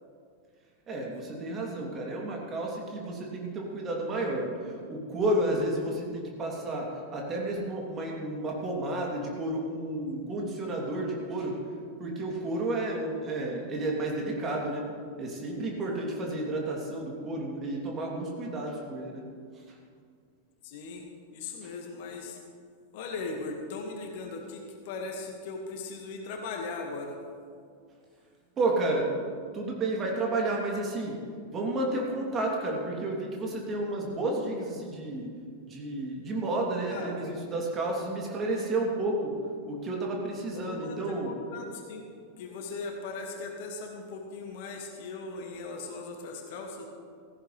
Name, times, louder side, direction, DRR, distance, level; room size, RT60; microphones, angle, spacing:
voice 1, 0.9-6.9 7.1-11.5 12.0-14.8 15.2-19.2 21.6-21.7 28.6-29.1 29.5-31.1 31.5-35.3 35.6-39.3 39.7-41.3, right 2 dB, 25° right, -1 dB, 3.0 m, -31 dB
voice 2, 20.6-22.4 22.9-27.2 36.9-37.3 40.5-42.1 42.4-46.9, left 3 dB, 50° left, 2 dB, 1.8 m, -38 dB
17.0 x 15.0 x 3.3 m, 2.2 s
figure-of-eight pair, 90°, 0 cm